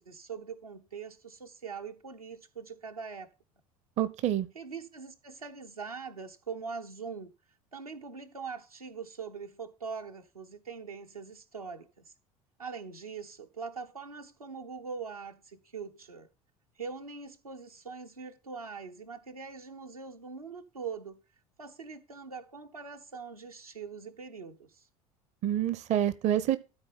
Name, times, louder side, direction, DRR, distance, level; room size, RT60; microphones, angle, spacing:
voice 1, 0.0-3.3 4.5-7.3 7.7-12.0 12.6-16.3 16.8-21.2 21.6-24.9, right 5 dB, 85° right, 1.1 m, -42 dB
voice 2, 4.0-4.5 25.4-26.6, right 11 dB, 40° right, 0.7 m, -27 dB
13.0 x 4.3 x 5.6 m
figure-of-eight pair, 65°, 18 cm